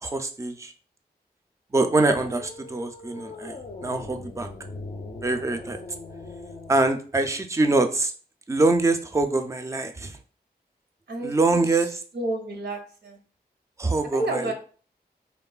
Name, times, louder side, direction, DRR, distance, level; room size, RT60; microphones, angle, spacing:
voice 1, 0.0-0.7 1.7-4.5 5.2-5.8 6.7-8.1 8.5-10.1 11.2-11.9 13.8-14.5, right 2 dB, 15° right, 7 dB, 0.4 m, -24 dB
sound 1, 2.1-6.9, left 2 dB, 50° left, 0.5 m, -40 dB
voice 2, 11.1-11.7 12.1-13.2 14.1-14.5, right 2 dB, 80° right, 2 dB, 0.6 m, -30 dB
3.1 x 2.1 x 2.3 m, 0.41 s
cardioid pair, 40°, 17 cm